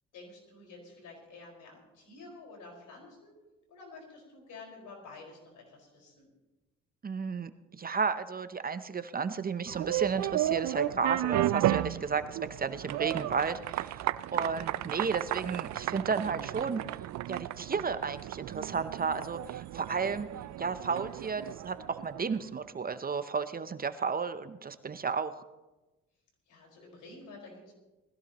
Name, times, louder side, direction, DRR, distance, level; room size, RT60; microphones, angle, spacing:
voice 1, 0.1-3.3 3.7-6.3 26.5-27.7, left 3 dB, 80° left, 0 dB, 5.0 m, -50 dB
voice 2, 7.0-17.0 17.3-20.3 20.6-25.4, right 5 dB, 30° right, 11 dB, 0.7 m, -33 dB
sound 1, 9.7-22.4, right 14 dB, 65° right, 0.5 m, -33 dB
20.5 x 15.0 x 3.0 m, 1.1 s
cardioid pair, 90°, 30 cm